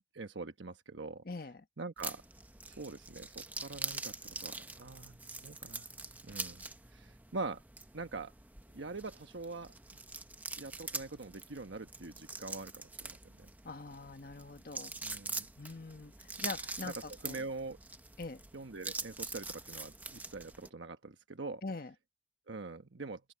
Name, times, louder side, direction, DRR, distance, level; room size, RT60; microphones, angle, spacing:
voice 1, 0.1-1.2 1.8-2.2 2.7-4.1 4.4-5.1 5.4-5.9 6.2-6.6 6.9-7.6 7.9-8.3 8.7-9.7 10.6-13.5 15.0-15.5 17.2-17.8 18.5-21.6 22.5-23.2, right 3 dB, 75° right, 1.1 m, -43 dB
voice 2, 1.2-1.6 13.6-14.9 15.6-17.5 18.2-18.4 21.6-21.9, left 3 dB, 50° left, 1.1 m, -43 dB
sound 1, 2.0-20.7, right 3 dB, 10° right, 0.8 m, -44 dB
open air
head